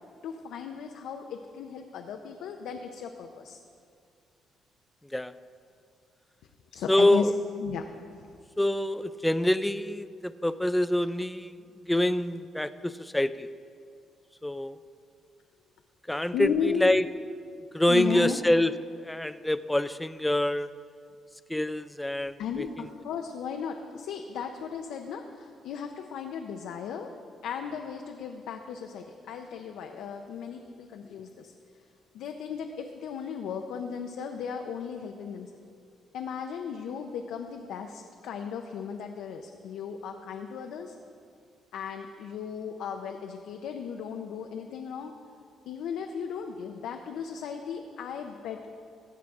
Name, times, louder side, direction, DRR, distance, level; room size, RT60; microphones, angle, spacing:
voice 1, 0.2-3.6 6.7-7.3 7.6-7.8 8.2-8.3 16.3-17.1 17.9-18.4 22.4-27.1 27.4-31.5 32.1-35.5 36.1-40.9 41.7-45.1 45.7-48.6, left 7 dB, 85° left, 4 dB, 0.6 m, -35 dB
voice 2, 6.9-7.3 8.6-11.6 11.8-13.5 14.4-14.8 16.1-17.0 17.7-18.7 19.0-20.7 21.5-22.9, left 1 dB, 5° left, 13 dB, 0.3 m, -26 dB
15.5 x 7.4 x 3.6 m, 2.3 s
cardioid pair, 90°, 0 cm